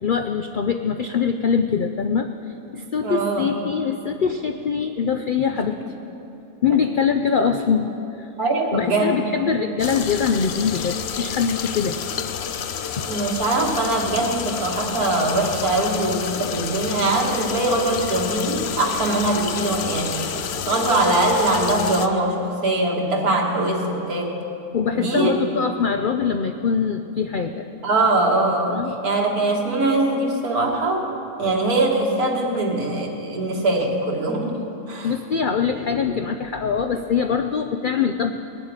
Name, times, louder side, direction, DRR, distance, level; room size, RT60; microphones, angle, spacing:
voice 1, 0.0-2.3 2.7-5.8 6.6-7.9 8.2-8.3 8.7-12.0 13.0-13.1 24.7-27.7 28.7-28.9 35.0-38.3, left 6 dB, 75° left, 8 dB, 0.4 m, -23 dB
voice 2, 3.0-3.5 5.8-5.9 8.4-9.3 13.1-20.2 20.7-24.4 24.9-25.5 27.8-31.0 31.4-35.1, right 2 dB, 85° right, -1 dB, 2.4 m, -22 dB
sound 1, 9.8-22.1, left 7 dB, 55° left, 0.8 m, -29 dB
19.0 x 7.9 x 8.9 m, 3.0 s
omnidirectional pair, 1.5 m